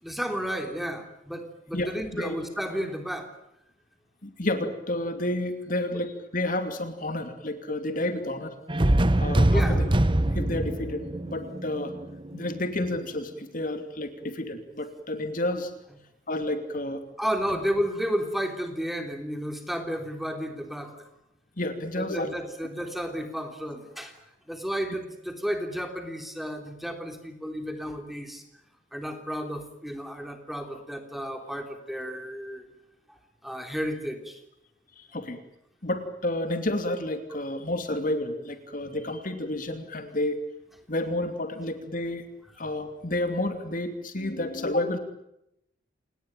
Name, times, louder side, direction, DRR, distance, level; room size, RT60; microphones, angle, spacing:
voice 1, 0.0-3.3 9.5-9.8 17.2-21.1 22.0-24.2 24.5-28.4 28.9-32.7 33.1-33.2 33.4-34.4, equal, ahead, 5 dB, 3.3 m, -32 dB
voice 2, 1.7-2.3 4.2-8.5 9.2-9.9 10.3-11.9 12.3-15.7 16.3-17.0 21.6-22.4 35.0-35.4 35.8-40.4 40.9-42.2 42.6-45.0, left 1 dB, 45° left, 8 dB, 2.8 m, -30 dB
sound 1, 8.7-12.6, right 1 dB, 25° right, 1.0 m, -24 dB
29.0 x 19.5 x 9.1 m, 0.81 s
head